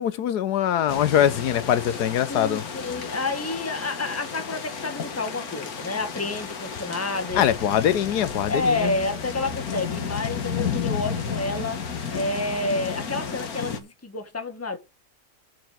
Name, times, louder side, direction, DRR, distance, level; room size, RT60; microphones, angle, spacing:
voice 1, 0.0-2.6 7.3-8.9, left 10 dB, 85° left, 1.4 m, -22 dB
sound 1, 0.9-13.8, left 6 dB, 65° left, 1.9 m, -32 dB
voice 2, 2.3-7.5 8.5-11.8 12.1-14.8, left 2 dB, 10° left, 1.3 m, -29 dB
7.1 x 5.9 x 7.2 m
omnidirectional pair, 1.7 m